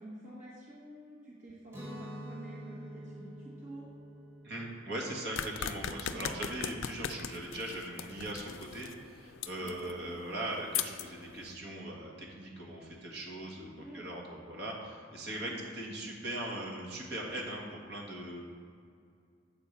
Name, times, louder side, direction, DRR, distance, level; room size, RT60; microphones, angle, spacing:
voice 1, 0.0-3.9 6.1-6.3 9.6-9.9 13.8-14.1 15.3-15.7, right 1 dB, 40° right, -6 dB, 1.2 m, -49 dB
Guitar, 1.7-7.5, equal, 15° right, 1.3 m, -48 dB
voice 2, 4.4-18.4, right 1 dB, 55° right, -2 dB, 1.6 m, -40 dB
sound 1, 5.4-11.5, left 8 dB, 80° left, 0.4 m, -40 dB
7.9 x 4.6 x 6.7 m, 2.2 s
head